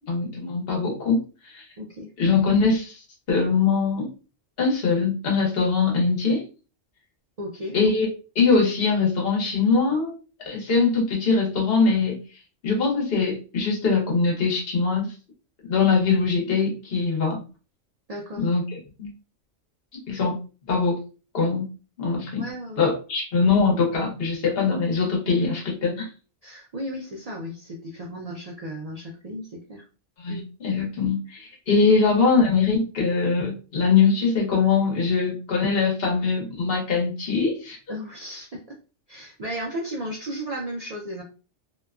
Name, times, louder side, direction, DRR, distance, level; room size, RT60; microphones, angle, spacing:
voice 1, 0.1-1.7 2.2-3.0 3.3-4.1 4.6-6.5 7.7-8.1 8.3-10.1 10.4-12.2 12.6-15.1 15.7-17.4 18.4-18.6 19.0-19.1 19.9-20.4 20.7-21.0 21.3-21.7 22.0-22.5 22.8-26.1 30.2-37.8, left 4 dB, 55° left, -1 dB, 1.1 m, -22 dB
voice 2, 1.8-2.1 7.4-7.8 18.1-18.5 22.3-22.9 26.4-29.8 30.3-30.4 31.8-32.0 37.9-38.8 39.1-41.2, equal, 75° right, -1 dB, 0.3 m, -35 dB
2.8 x 2.2 x 2.3 m, 0.34 s
omnidirectional pair, 1.3 m